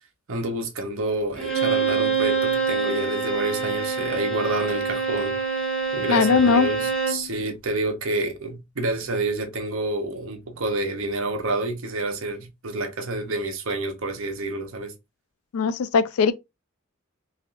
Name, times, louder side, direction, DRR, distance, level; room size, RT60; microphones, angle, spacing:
voice 1, 0.3-5.4 5.9-14.9, right 2 dB, 70° right, 0.8 m, -28 dB
Bowed string instrument, 1.4-7.3, right 5 dB, 5° left, 0.8 m, -25 dB
voice 2, 6.1-6.7 15.5-16.3, left 5 dB, 85° left, 0.3 m, -19 dB
3.4 x 2.4 x 2.4 m
head